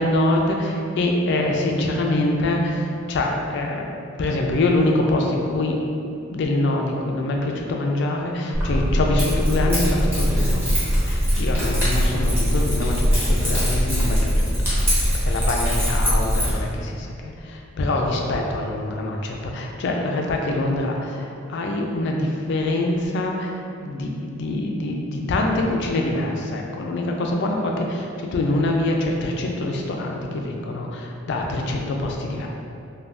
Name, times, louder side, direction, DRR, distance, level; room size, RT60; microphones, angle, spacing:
voice 1, 0.0-3.9 4.2-5.8 6.3-10.7 11.0-14.5 14.8-32.5, left 2 dB, 60° left, 1 dB, 0.4 m, -24 dB
Keys jangling, 8.5-16.5, equal, 10° right, 0.9 m, -21 dB
2.6 x 2.2 x 3.3 m, 2.6 s
head